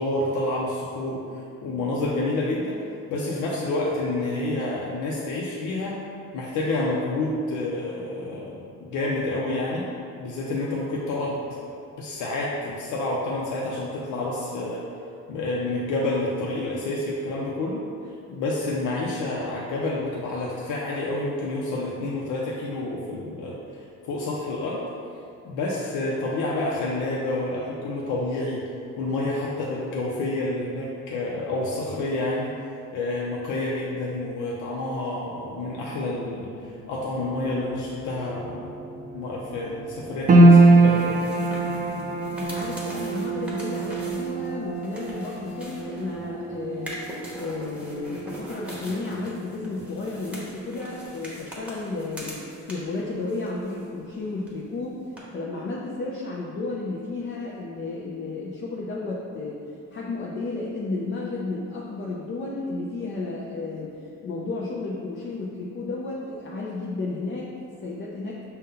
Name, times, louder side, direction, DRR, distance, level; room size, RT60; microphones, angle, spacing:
voice 1, 0.0-2.8 3.1-6.0 6.3-9.9 10.2-14.8 15.3-24.8 25.4-28.7 29.0-38.7 39.1-41.1, left 2 dB, 85° left, -4 dB, 0.6 m, -29 dB
sound 1, 35.4-50.5, equal, 90° right, 0.8 m, -45 dB
sound 2, 40.3-52.7 52.9-53.9 54.3-54.4, right 2 dB, 30° right, 0.4 m, -23 dB
sound 3, 40.8-46.3 46.7-53.0 53.3-54.2 54.4-54.5 55.2-55.3, equal, 5° right, 1.0 m, -42 dB
voice 2, 42.3-55.0 55.3-59.6 59.9-68.4, left 3 dB, 40° left, -4 dB, 0.5 m, -32 dB
5.3 x 2.2 x 3.7 m, 2.5 s
cardioid pair, 90°, 30 cm